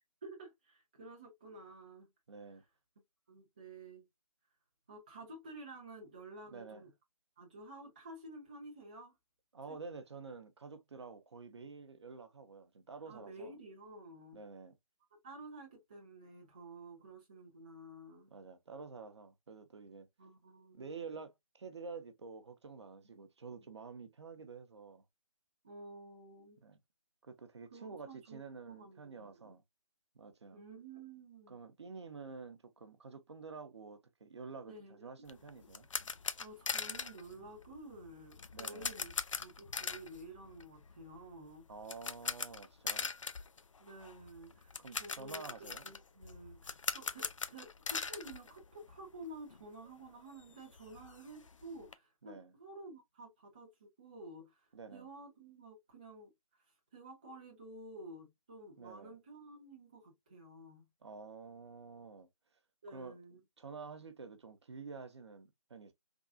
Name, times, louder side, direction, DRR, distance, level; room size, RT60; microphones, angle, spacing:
voice 1, 0.2-2.1 3.3-4.1 4.9-6.9 7.4-9.2 9.7-9.8 13.1-14.4 15.2-18.3 20.2-20.9 23.1-23.2 25.6-26.6 27.7-28.4 28.7-29.6 30.5-31.6 34.7-35.1 36.4-39.1 39.4-41.7 43.8-45.4 45.8-56.3 56.9-60.9 62.8-63.4, right 2 dB, 15° right, 0.4 m, -51 dB
voice 2, 2.3-2.6 6.5-6.8 9.5-13.5 14.3-14.8 18.3-20.1 20.7-25.0 26.6-26.8 27.2-29.6 30.1-30.6 31.5-35.9 38.5-38.9 41.7-43.1 44.8-45.9 52.2-52.5 54.7-55.1 58.8-59.2 61.0-62.3 62.9-63.2 63.6-65.9, right 4 dB, 50° right, 0.6 m, -49 dB
sound 1, 35.3-49.2 49.5-49.6 50.1-50.2 50.4-51.9, left 5 dB, 60° left, 0.4 m, -42 dB
3.5 x 2.3 x 2.4 m
figure-of-eight pair, 150°, 18 cm